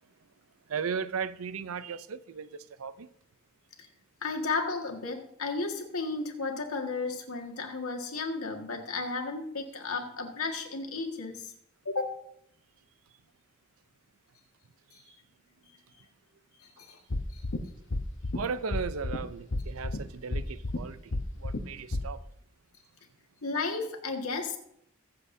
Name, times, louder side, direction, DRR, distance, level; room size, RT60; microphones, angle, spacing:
voice 1, 0.7-3.1 18.3-22.2, right 6 dB, 80° right, 0.5 m, -36 dB
voice 2, 4.2-11.5 11.9-12.2 14.9-15.0 16.6-17.0 17.3-17.4 23.4-24.6, left 3 dB, 90° left, 1.8 m, -33 dB
sound 1, 17.1-17.6 17.9-18.4 18.7-19.2 19.5-20.0 20.3-20.8 21.1-21.6 21.9-22.0, left 2 dB, 60° left, 0.9 m, -30 dB
22.0 x 7.7 x 2.7 m
head